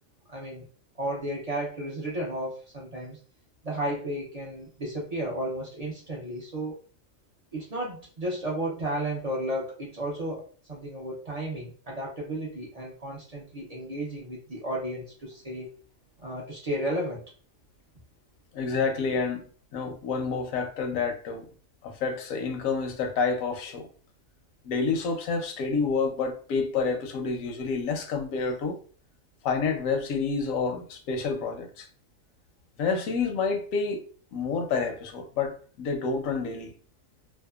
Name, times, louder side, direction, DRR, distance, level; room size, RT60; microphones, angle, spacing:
voice 1, 0.3-0.6 1.0-3.2 3.6-6.8 7.5-15.7 16.2-17.2, right 1 dB, 50° right, 0.5 m, -33 dB
voice 2, 18.5-19.4 19.7-21.5 21.8-23.9 24.6-28.8 29.4-31.9 32.8-34.1 34.3-36.7, left 4 dB, 80° left, 1.0 m, -28 dB
2.7 x 2.2 x 2.2 m
omnidirectional pair, 1.4 m